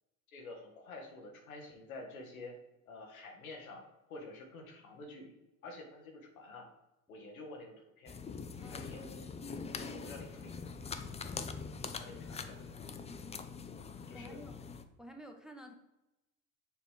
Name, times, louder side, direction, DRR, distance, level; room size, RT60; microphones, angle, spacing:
voice 1, 0.3-2.6 2.9-5.3 5.6-6.7 7.1-8.2 8.7-9.3 9.9-10.9 12.0-12.7 14.1-14.4, left 2 dB, 90° left, 2 dB, 1.2 m, -49 dB
sound 1, 8.1-14.8, left 5 dB, 15° left, 0.4 m, -43 dB
voice 2, 8.6-8.9 9.7-10.1 14.1-14.5 15.0-15.7, equal, ahead, 3 dB, 0.8 m, -51 dB
6.8 x 3.0 x 4.8 m, 0.96 s
hypercardioid pair, 70°, 41 cm